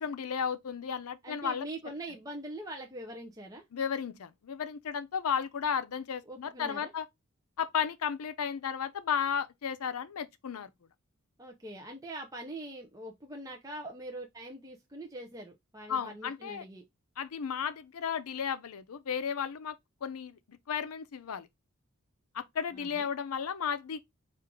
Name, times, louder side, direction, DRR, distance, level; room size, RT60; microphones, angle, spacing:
voice 1, 0.0-1.7 3.7-7.0 7.6-10.7 15.9-16.6 17.2-19.7 20.0-21.5 22.3-24.0, left 7 dB, 85° left, 0.5 m, -34 dB
voice 2, 1.2-3.6 6.3-6.9 11.4-16.9 22.7-23.1, right 1 dB, 15° right, 0.5 m, -43 dB
4.5 x 2.4 x 3.6 m
head